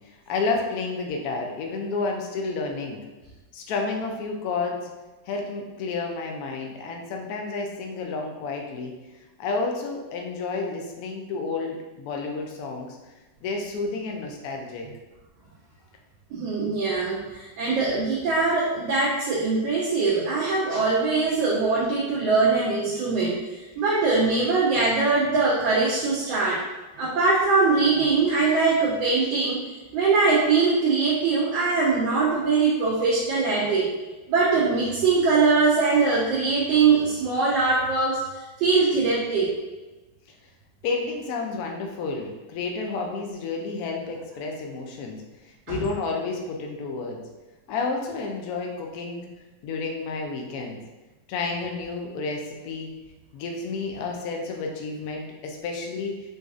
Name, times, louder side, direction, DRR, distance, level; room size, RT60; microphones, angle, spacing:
voice 1, 0.3-3.0 3.5-4.9 5.3-8.9 9.4-13.0 13.4-14.9 40.8-45.2 45.7-47.2 47.7-49.3 49.6-50.8 51.3-53.0 53.3-56.1, left 4 dB, 80° left, 1 dB, 0.8 m, -30 dB
voice 2, 16.3-23.4 23.8-26.6 27.0-29.6 29.9-33.9 34.3-39.5 45.7-45.8, right 4 dB, 75° right, -6 dB, 1.3 m, -22 dB
4.0 x 2.4 x 2.4 m, 1.2 s
omnidirectional pair, 2.2 m